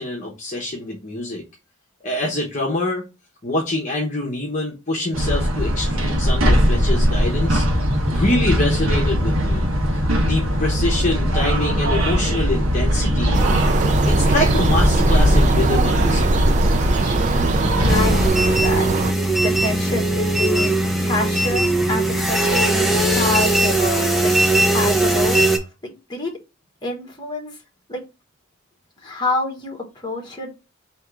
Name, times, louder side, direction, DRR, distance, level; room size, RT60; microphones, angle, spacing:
voice 1, 0.0-1.4 2.0-3.0 3.4-9.7 10.2-13.4 14.1-16.6, left 1 dB, 35° left, -2 dB, 0.9 m, -25 dB
sound 1, 5.1-18.3, equal, 80° right, 1.1 m, -19 dB
sound 2, 13.3-19.1, right 4 dB, 35° right, 0.3 m, -23 dB
voice 2, 17.1-18.9 19.4-20.8 21.0-24.3 24.7-26.3 26.8-27.6 27.9-28.0 29.0-30.5, left 1 dB, 20° left, 0 dB, 1.3 m, -27 dB
sound 3, 17.9-25.6, right 1 dB, ahead, 0.6 m, -19 dB
3.5 x 2.9 x 4.6 m, 0.28 s
head